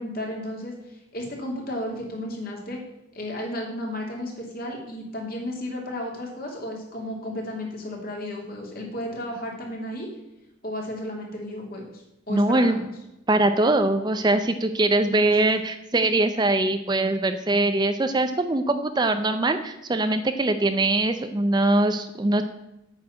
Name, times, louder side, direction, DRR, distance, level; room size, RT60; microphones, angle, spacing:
voice 1, 0.0-2.8 3.1-10.1 10.6-12.8 15.1-15.3, left 1 dB, 45° left, 0 dB, 2.9 m, -33 dB
voice 2, 12.3-12.8 13.3-22.4, right 2 dB, 20° right, 8 dB, 0.5 m, -22 dB
8.9 x 6.4 x 8.4 m, 0.92 s
head